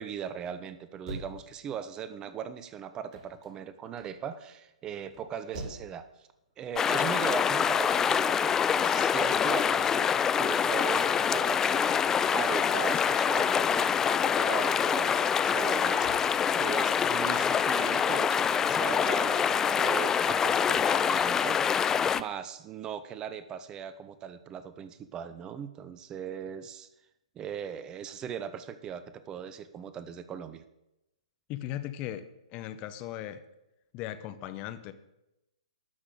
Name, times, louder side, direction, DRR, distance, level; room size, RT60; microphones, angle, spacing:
voice 1, 0.0-6.3 6.6-10.1 10.4-12.0 12.3-21.9 22.1-26.9 27.4-30.6, right 8 dB, 20° right, 12 dB, 0.7 m, -39 dB
sound 1, 1.1-16.2, right 2 dB, 45° right, 3.3 m, -49 dB
sound 2, 6.8-22.2, left 7 dB, 15° left, 0.4 m, -25 dB
voice 2, 31.5-32.3 32.5-33.4 33.9-34.9, left 12 dB, 30° left, 12 dB, 0.8 m, -37 dB
12.0 x 6.0 x 7.8 m, 0.90 s
figure-of-eight pair, 120°, 4 cm